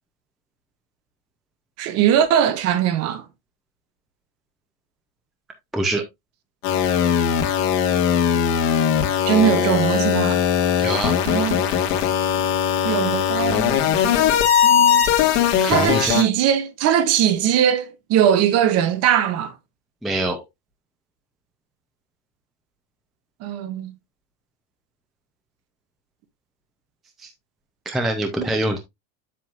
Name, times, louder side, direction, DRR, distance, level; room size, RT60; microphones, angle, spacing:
voice 1, 1.8-3.3 9.3-10.4 11.2-11.7 12.8-15.1 15.6-19.5 23.4-23.9 28.4-28.5, right 9 dB, 35° right, 0.8 m, -21 dB
sound 1, 6.6-16.2, left 9 dB, 70° left, 2.3 m, -19 dB
voice 2, 10.8-11.1 15.6-16.1 20.0-20.4 27.2-27.3 27.9-28.8, right 1 dB, ahead, 0.5 m, -24 dB
7.8 x 7.1 x 2.4 m
cardioid pair, 170°, 46 cm